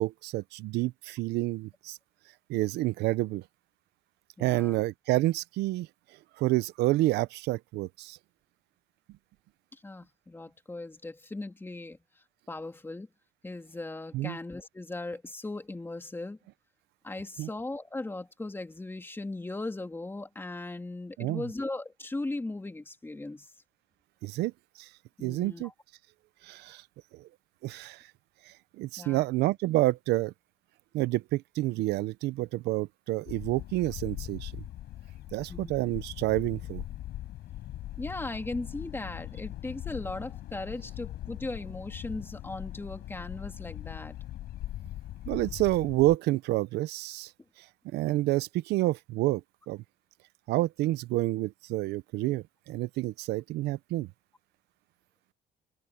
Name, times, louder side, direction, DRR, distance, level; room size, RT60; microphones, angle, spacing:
voice 1, 0.0-2.0 2.5-3.4 4.4-5.9 6.4-8.2 14.1-14.4 17.4-17.5 21.2-21.4 24.2-24.5 24.8-24.9 25.2-25.7 26.4-26.8 27.1-27.3 27.6-28.1 28.5-30.3 30.9-34.6 35.3-36.8 45.3-47.3 47.9-49.4 49.7-49.8 50.5-54.1, right 18 dB, 80° right, 0.6 m, -29 dB
voice 2, 4.4-4.8 9.7-12.0 12.5-13.1 13.4-16.4 17.0-23.5 25.2-25.7 29.0-29.2 35.5-35.7 38.0-44.2, left 2 dB, 15° left, 2.6 m, -38 dB
sound 1, 33.3-46.2, left 14 dB, 70° left, 7.9 m, -41 dB
cardioid pair, 110°, 17 cm